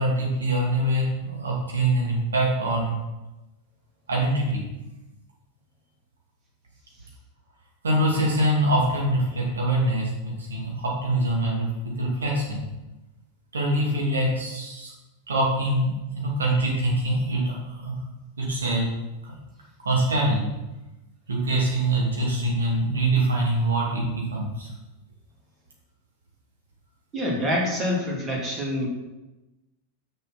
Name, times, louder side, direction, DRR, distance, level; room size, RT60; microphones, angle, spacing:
voice 1, 0.0-2.9 4.1-4.6 7.8-12.6 13.5-14.9 15.3-17.9 18.4-18.9 19.8-20.5 21.3-24.7, right 1 dB, 70° right, -3 dB, 2.6 m, -24 dB
voice 2, 27.1-28.9, left 1 dB, 25° right, -1 dB, 2.4 m, -26 dB
6.7 x 6.4 x 6.0 m, 1.0 s
figure-of-eight pair, 90°, 0 cm